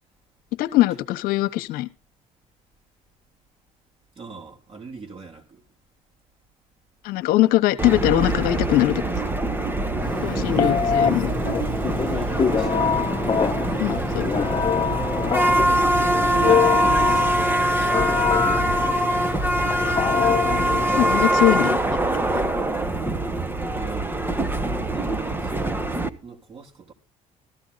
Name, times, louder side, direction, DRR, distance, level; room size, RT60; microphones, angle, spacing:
voice 1, 0.6-1.9 7.0-9.0 10.2-11.3 13.8-14.2 19.8-20.3 20.9-21.8, left 15 dB, 75° left, 1.2 m, -21 dB
voice 2, 4.2-5.6 12.1-12.7 15.6-18.6 23.7-24.4 24.8-26.9, right 5 dB, 40° right, 3.8 m, -37 dB
sound 1, 7.8-26.1, right 1 dB, 15° right, 1.2 m, -23 dB
Telephone, 10.0-21.2, left 7 dB, 30° left, 0.8 m, -25 dB
15.5 x 13.5 x 4.1 m
supercardioid pair, 90°, 15 cm